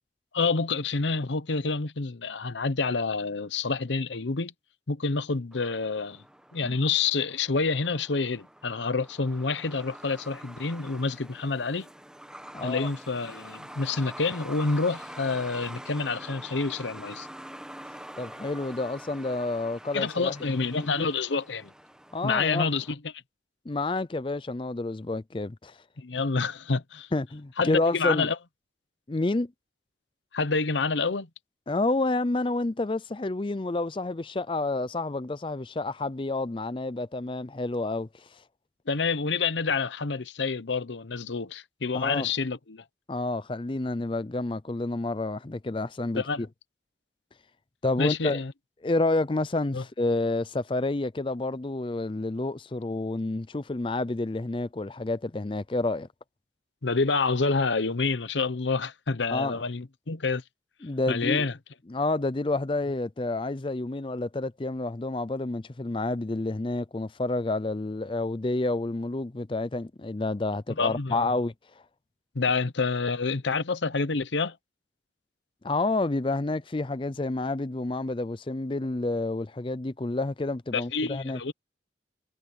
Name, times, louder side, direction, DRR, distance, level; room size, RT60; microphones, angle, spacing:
voice 1, 0.3-4.5 4.9-6.2 6.5-11.9 12.6-17.3 19.9-21.7 22.2-23.0 26.0-27.1 27.6-28.4 30.3-31.3 38.9-42.8 46.2-46.5 48.0-48.5 49.7-49.8 56.8-60.4 61.1-61.5 70.8-71.3 72.3-74.6 80.7-81.5, left 4 dB, 90° left, 0.9 m, -28 dB
Truck, 5.5-22.9, right 1 dB, 5° right, 1.1 m, -45 dB
voice 2, 12.5-12.9 18.2-20.3 20.7-21.1 22.1-22.7 23.7-25.8 27.1-28.3 29.1-29.5 31.7-38.3 41.9-42.3 43.1-46.5 47.8-48.4 48.8-56.1 59.3-59.6 60.8-61.5 61.9-71.5 75.6-81.4, left 2 dB, 30° left, 0.5 m, -29 dB
head